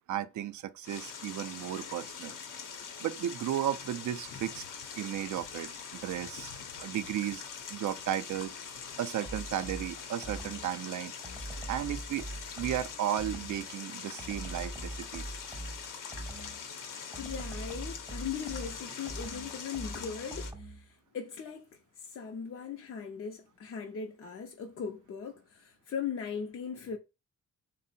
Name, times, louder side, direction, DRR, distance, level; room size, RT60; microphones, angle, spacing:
voice 1, 0.1-2.3 3.0-4.6 5.0-6.5 6.8-7.4 7.7-8.5 9.0-11.1 11.7-12.3 12.6-15.3, right 11 dB, 70° right, 0.5 m, -34 dB
sound 1, 0.8-20.5, left 6 dB, 85° left, 0.8 m, -43 dB
sound 2, 9.2-10.8 11.2-13.7 14.2-16.7 17.1-20.9, right 1 dB, 10° right, 0.4 m, -42 dB
voice 2, 17.2-27.0, left 6 dB, 45° left, 0.5 m, -39 dB
3.6 x 2.0 x 4.1 m
wide cardioid pair, 160°, 31 cm